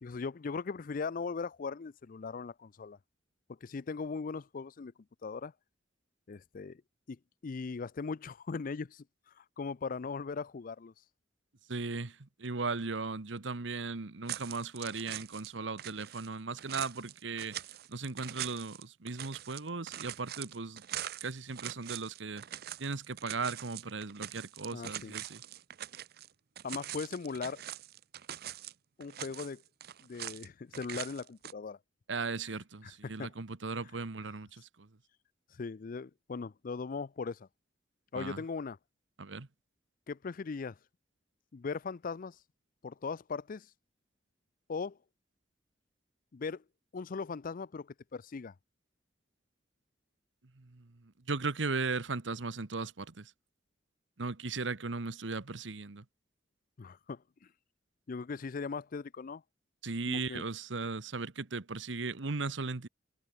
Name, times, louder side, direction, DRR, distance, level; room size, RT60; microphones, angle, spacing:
voice 1, 0.0-3.0 3.6-4.9 5.2-5.5 6.3-6.8 7.1-7.2 7.4-9.0 9.4-10.9 24.7-25.2 26.6-27.6 29.0-29.6 30.0-31.8 32.8-33.3 35.6-37.5 38.1-38.8 40.1-40.8 41.5-42.4 42.8-43.7 44.7-45.0 46.3-46.6 46.9-48.5 56.8-57.2 58.1-59.4 60.1-60.4, left 4 dB, 50° left, 0.5 m, -39 dB
voice 2, 11.7-17.6 17.9-20.8 21.2-22.4 22.8-25.4 32.1-34.9 38.1-38.4 39.2-39.5 50.6-53.3 54.2-56.0 59.8-62.9, right 4 dB, 75° right, 1.2 m, -37 dB
sound 1, 14.3-15.5 15.8-26.3 26.6-28.7 29.0-30.5 30.7-31.5, right 12 dB, 55° right, 0.6 m, -43 dB
head